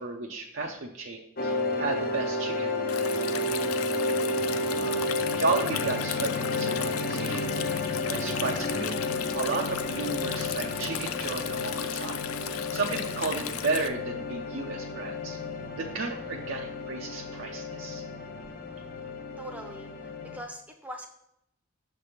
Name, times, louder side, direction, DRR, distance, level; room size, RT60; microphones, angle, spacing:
voice 1, 0.0-2.7 4.7-5.1 5.4-9.0 9.3-12.2 12.5-15.4 15.8-18.0, right 3 dB, 60° right, 1 dB, 0.5 m, -33 dB
sound 1, 1.4-20.4, left 2 dB, 45° left, 0.6 m, -32 dB
Stream, 2.9-13.9, left 10 dB, 90° left, 0.4 m, -37 dB
voice 2, 19.4-21.1, equal, 5° right, 4 dB, 0.6 m, -42 dB
6.7 x 3.4 x 5.6 m, 0.78 s
head